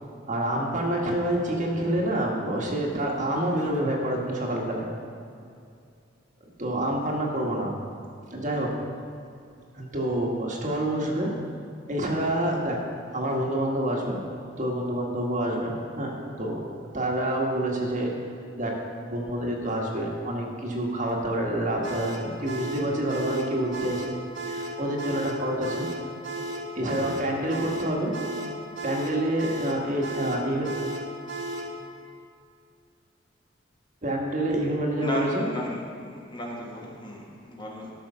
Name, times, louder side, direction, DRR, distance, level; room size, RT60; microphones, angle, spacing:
voice 1, 0.3-4.9 6.6-7.7 8.3-8.8 9.7-11.3 11.9-12.8 13.1-14.3 14.6-16.6 16.9-18.1 18.6-24.0 24.5-25.9 26.7-28.2 28.8-30.7 34.0-35.4, right 1 dB, 40° right, -1 dB, 1.5 m, -27 dB
sound 1, 21.8-31.8, right 1 dB, 85° right, 1.3 m, -34 dB
voice 2, 35.0-37.9, equal, 25° left, -2 dB, 1.4 m, -35 dB
13.0 x 6.4 x 5.5 m, 2.4 s
head